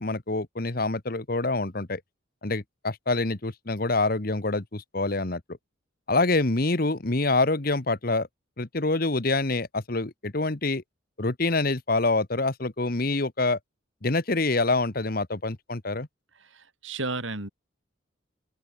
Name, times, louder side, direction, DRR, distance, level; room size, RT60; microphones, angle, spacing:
voice 1, 0.0-2.0 2.4-5.4 6.1-8.3 8.6-10.8 11.2-13.6 14.0-16.1, left 2 dB, 45° left, 1.3 m, -26 dB
voice 2, 16.3-17.5, right 3 dB, 75° right, 4.7 m, -33 dB
open air
head